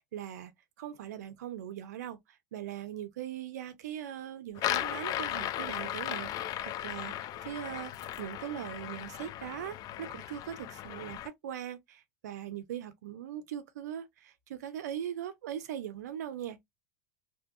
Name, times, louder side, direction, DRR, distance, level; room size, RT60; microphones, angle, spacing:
voice 1, 0.1-0.5 0.8-7.1 7.4-7.9 8.2-16.6, right 10 dB, 80° right, 0.5 m, -40 dB
sound 1, 4.6-11.3, left 12 dB, 45° left, 0.3 m, -36 dB
2.6 x 2.2 x 2.6 m
hypercardioid pair, 90°, 9 cm